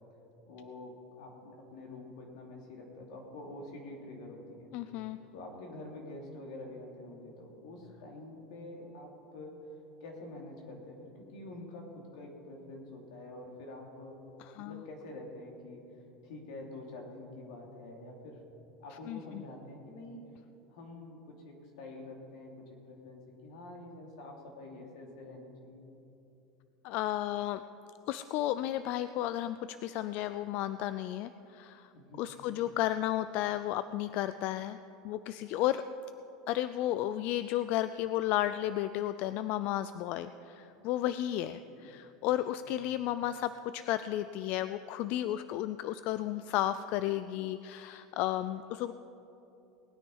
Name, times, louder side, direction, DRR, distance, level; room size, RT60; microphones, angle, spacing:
voice 1, 0.5-4.7 5.3-9.6 10.0-14.2 14.6-15.9 16.2-18.4 18.8-20.3 20.7-25.9 31.9-32.6 41.7-41.9 42.6-42.9, left 2 dB, 80° left, 1 dB, 2.9 m, -47 dB
voice 2, 4.7-5.2 14.6-14.7 19.1-19.4 26.8-27.6 28.1-31.9 32.2-34.8 35.0-35.8 36.5-48.9, left 13 dB, 55° left, 13 dB, 0.4 m, -33 dB
19.5 x 9.5 x 5.5 m, 2.9 s
supercardioid pair, 130°, 3 cm